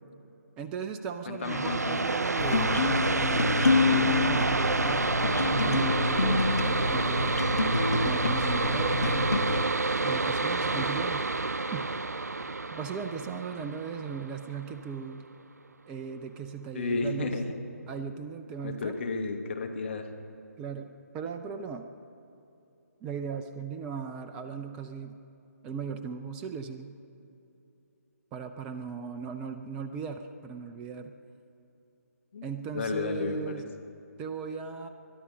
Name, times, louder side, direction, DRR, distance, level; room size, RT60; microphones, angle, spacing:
voice 1, 0.6-7.3 7.9-9.3 10.0-11.3 11.7-11.9 12.7-15.3 15.9-17.3 17.9-18.9 20.6-21.9 23.0-25.2 25.6-27.0 28.3-31.2 32.4-33.7 34.2-34.9, right 6 dB, 10° right, 8 dB, 0.3 m, -37 dB
voice 2, 1.3-2.1 16.7-17.5 18.6-20.1 32.3-32.5 32.7-33.6, left 3 dB, 45° left, 4 dB, 1.4 m, -32 dB
sound 1, 1.4-14.8, right 3 dB, 75° right, 0.5 m, -29 dB
sound 2, 2.4-9.6, left 3 dB, 70° left, 0.8 m, -27 dB
22.0 x 11.0 x 5.3 m, 2.8 s
figure-of-eight pair, 145°, 9 cm